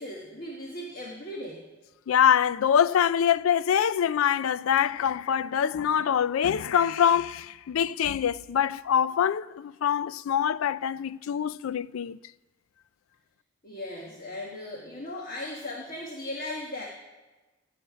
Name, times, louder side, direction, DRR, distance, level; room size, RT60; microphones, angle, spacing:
voice 1, 0.0-1.6 13.6-16.9, left 1 dB, 40° left, 1.3 m, -37 dB
voice 2, 2.1-12.2, left 8 dB, 85° left, 0.3 m, -24 dB
17.0 x 7.0 x 5.0 m
head